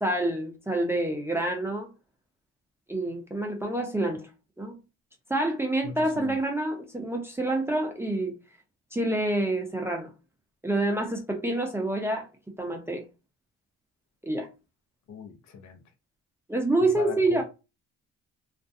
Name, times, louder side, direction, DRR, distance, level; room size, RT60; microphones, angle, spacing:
voice 1, 0.0-1.9 2.9-4.2 4.6-4.8 5.3-8.3 8.9-10.1 10.6-12.2 12.6-13.0 14.2-14.5 16.5-17.4, right 2 dB, 10° right, 0.6 m, -27 dB
voice 2, 5.8-6.4 15.1-15.8 16.8-17.4, left 5 dB, 70° left, 0.7 m, -40 dB
2.5 x 2.1 x 2.6 m
cardioid pair, 90°, 30 cm